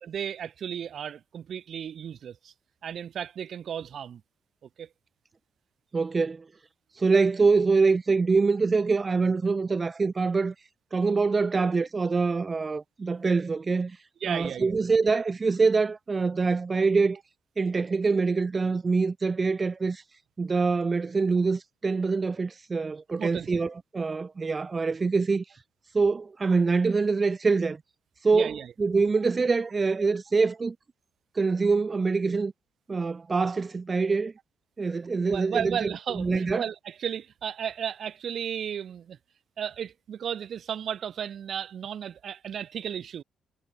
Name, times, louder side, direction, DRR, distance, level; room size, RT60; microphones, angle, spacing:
voice 1, 0.1-2.5 2.8-4.2 4.6-4.9 14.2-14.7 23.2-23.5 28.3-28.7 35.3-39.2 39.6-43.2, right 8 dB, 60° right, 3.1 m, -34 dB
voice 2, 5.9-6.4 7.0-10.5 10.9-14.0 14.3-17.2 17.6-20.0 20.4-25.4 25.9-27.8 28.2-30.7 31.3-32.5 32.9-34.3 34.8-35.8 36.2-36.7, right 4 dB, 30° right, 1.4 m, -25 dB
cardioid pair, 90°, 0 cm